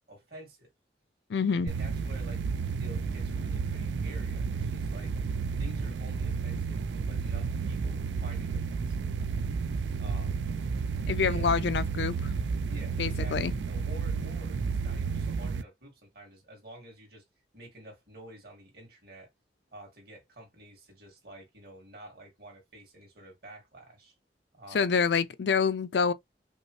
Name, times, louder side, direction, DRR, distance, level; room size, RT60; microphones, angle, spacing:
voice 1, 0.1-0.7 1.5-2.4 2.8-5.1 5.6-9.1 9.9-10.4 11.2-11.6 12.7-17.2 17.5-19.3 19.7-24.1 24.5-25.0, right 1 dB, 60° right, 2.2 m, -50 dB
voice 2, 1.3-1.7 11.1-12.3 13.0-13.5 24.7-26.1, left 5 dB, 70° left, 0.4 m, -27 dB
sound 1, 1.7-15.6, right 5 dB, 80° right, 0.4 m, -32 dB
5.3 x 2.1 x 3.1 m
head